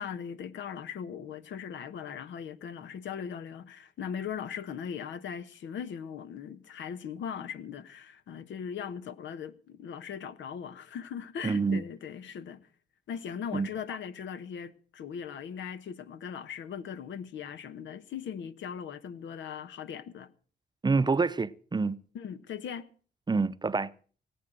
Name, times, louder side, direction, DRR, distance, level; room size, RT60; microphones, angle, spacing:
voice 1, 0.0-12.7 13.1-20.3 22.1-22.9, left 7 dB, 85° left, 1.2 m, -39 dB
voice 2, 11.4-11.8 13.5-13.7 20.8-22.0 23.3-23.9, right 4 dB, 25° right, 0.6 m, -27 dB
19.0 x 8.6 x 7.6 m
cardioid pair, 110°, 19 cm